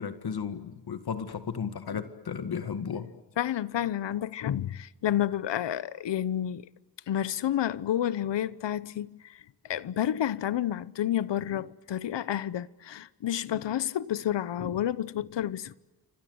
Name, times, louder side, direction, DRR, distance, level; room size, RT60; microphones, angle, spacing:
voice 1, 0.0-3.1, left 6 dB, 60° left, 1.9 m, -34 dB
voice 2, 3.4-6.7 7.1-15.7, left 11 dB, 85° left, 1.0 m, -30 dB
28.5 x 25.5 x 8.0 m
wide cardioid pair, 120°, 42 cm